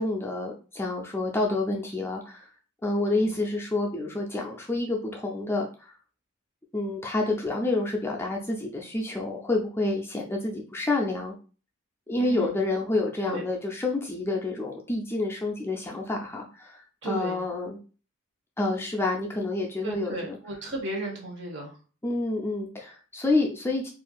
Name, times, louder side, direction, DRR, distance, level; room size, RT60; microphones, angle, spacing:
voice 1, 0.0-2.5 2.8-5.9 6.7-11.3 12.1-17.8 18.6-20.4 22.0-23.9, left 2 dB, 10° left, -1 dB, 0.3 m, -28 dB
voice 2, 3.0-3.4 10.1-10.2 12.2-12.6 13.2-13.5 17.0-17.4 19.8-21.8, right 1 dB, 55° right, 1 dB, 1.0 m, -35 dB
4.4 x 2.5 x 2.2 m, 0.36 s
head